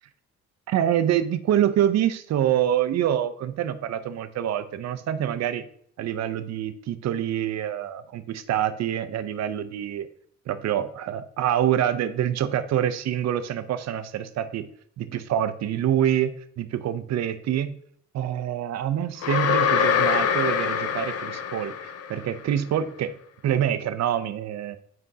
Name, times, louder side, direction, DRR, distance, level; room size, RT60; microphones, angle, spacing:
voice 1, 0.7-5.7 6.0-10.1 10.5-14.7 15.0-17.8 18.1-23.1 23.4-24.8, right 10 dB, 60° right, 11 dB, 0.5 m, -26 dB
sound 1, 19.2-22.3, left 7 dB, 55° left, 0.6 m, -24 dB
7.5 x 5.1 x 2.7 m, 0.64 s
cardioid pair, 90°, 30 cm